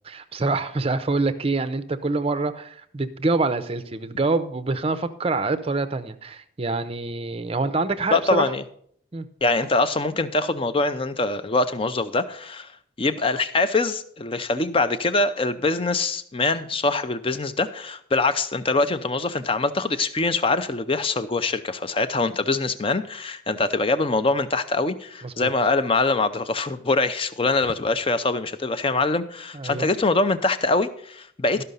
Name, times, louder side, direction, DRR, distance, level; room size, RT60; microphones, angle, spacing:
voice 1, 0.0-8.5 9.1-9.3 25.2-25.5 29.5-29.9 31.6-31.7, right 3 dB, 30° right, 12 dB, 0.5 m, -26 dB
voice 2, 8.1-8.6 9.4-12.7 13.0-31.6, left 3 dB, 25° left, 12 dB, 0.5 m, -23 dB
12.5 x 5.6 x 5.3 m, 0.65 s
head